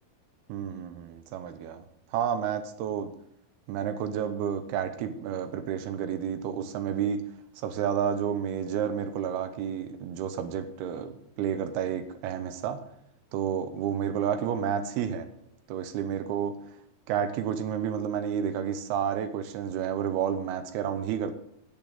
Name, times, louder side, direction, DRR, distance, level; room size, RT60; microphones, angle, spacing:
voice 1, 0.5-1.9 2.1-3.1 3.7-7.2 7.6-12.8 13.3-15.3 15.7-16.6 17.1-21.3, right 8 dB, 85° right, 9 dB, 2.7 m, -30 dB
10.5 x 6.9 x 6.4 m, 0.73 s
omnidirectional pair, 4.6 m